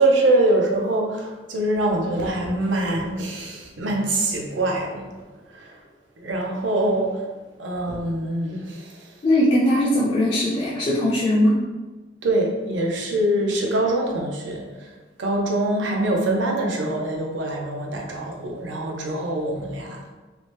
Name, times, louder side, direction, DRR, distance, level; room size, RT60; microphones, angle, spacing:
voice 1, 0.0-5.2 5.5-5.8 6.2-7.3 7.6-9.1 12.2-14.9 15.2-20.1, right 1 dB, 85° right, 0 dB, 0.6 m, -24 dB
voice 2, 9.2-11.6, left 1 dB, 30° left, -6 dB, 0.3 m, -20 dB
2.8 x 2.1 x 3.2 m, 1.3 s
head